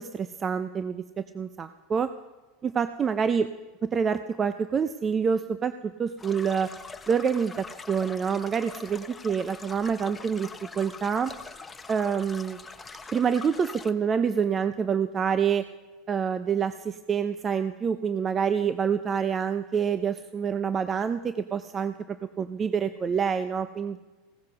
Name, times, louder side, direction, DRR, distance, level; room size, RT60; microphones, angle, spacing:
voice 1, 0.0-2.1 2.6-3.5 3.8-6.7 7.1-10.5 10.8-11.3 11.9-12.6 13.1-15.7 16.1-24.0, right 6 dB, 30° right, 11 dB, 0.6 m, -27 dB
sound 1, 6.2-13.9, left 4 dB, 15° left, 1.1 m, -43 dB
16.5 x 14.5 x 5.8 m, 1.2 s
hypercardioid pair, 90°, 0 cm